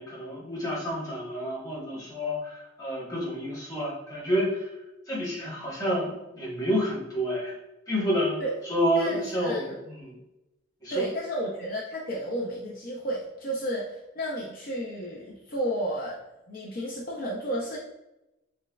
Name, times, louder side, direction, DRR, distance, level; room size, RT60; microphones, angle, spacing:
voice 1, 0.0-4.7 5.1-7.5 7.9-8.4 8.7-9.7 10.0-10.1 10.8-11.1, equal, 20° left, -6 dB, 1.2 m, -29 dB
voice 2, 9.0-9.8 10.9-16.2 16.5-17.8, equal, 50° left, -4 dB, 0.5 m, -32 dB
6.2 x 2.2 x 2.3 m, 0.93 s
head